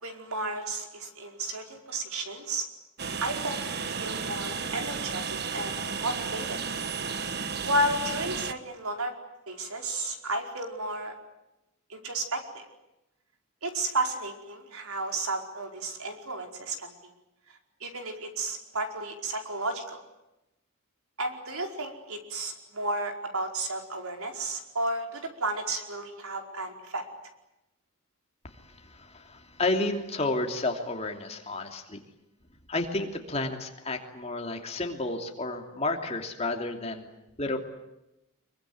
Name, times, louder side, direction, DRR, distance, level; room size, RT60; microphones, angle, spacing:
voice 1, 0.0-2.6 3.2-5.2 5.5-6.6 7.6-9.1 9.5-11.1 11.9-12.7 13.6-16.9 17.8-20.0 21.2-27.0, right 2 dB, 80° right, 4 dB, 4.9 m, -33 dB
Train, 3.0-8.5, right 5 dB, 50° right, 1.3 m, -33 dB
voice 2, 28.5-32.0 32.7-37.1 37.4-37.6, left 2 dB, 30° left, 4 dB, 3.0 m, -31 dB
25.5 x 23.5 x 9.6 m, 0.92 s
head